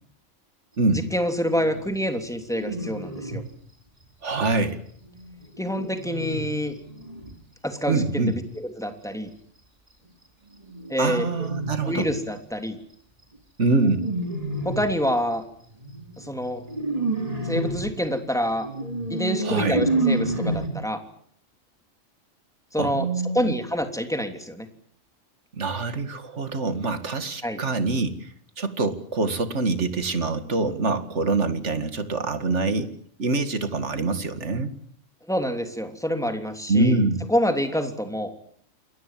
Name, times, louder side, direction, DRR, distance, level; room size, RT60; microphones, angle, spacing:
voice 1, 0.9-3.4 5.6-6.7 7.6-9.3 10.9-11.2 11.9-12.8 14.6-15.4 16.2-16.6 17.4-18.7 19.1-21.0 22.7-23.1 23.3-24.7 27.4-27.6 35.3-37.0 37.3-38.3, equal, ahead, 6 dB, 3.2 m, -27 dB
sound 1, 1.4-2.0 2.5-3.5 4.9-7.4 10.6-12.2 13.8-15.1 15.8-20.7, right 2 dB, 30° right, 3.5 m, -30 dB
voice 2, 4.2-4.8 7.9-8.4 11.0-12.1 13.6-14.0 19.4-19.8 22.8-23.5 25.5-32.9 33.2-34.7 36.7-37.3, right 3 dB, 60° right, 10 dB, 2.4 m, -25 dB
28.5 x 22.0 x 7.6 m, 0.64 s
omnidirectional pair, 1.3 m